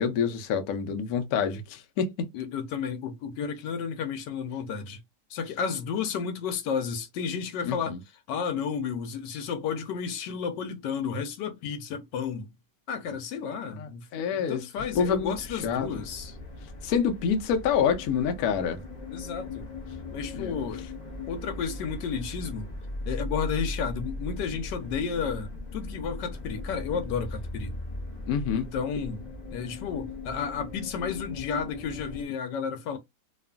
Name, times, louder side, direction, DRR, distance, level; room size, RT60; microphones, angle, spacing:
voice 1, 0.0-2.3 7.6-8.0 13.8-14.6 14.9-15.3 15.6-15.9 16.8-18.8 20.3-20.6 28.3-28.7, left 7 dB, 70° left, 1.0 m, -27 dB
voice 2, 2.3-5.0 5.3-7.9 8.3-12.5 12.9-16.4 19.1-19.7 20.1-20.9 21.3-22.7 23.1-27.8 28.5-33.0, left 6 dB, 90° left, 1.3 m, -32 dB
sound 1, 14.7-32.2, left 2 dB, 55° left, 0.4 m, -38 dB
2.9 x 2.4 x 2.3 m
omnidirectional pair, 1.8 m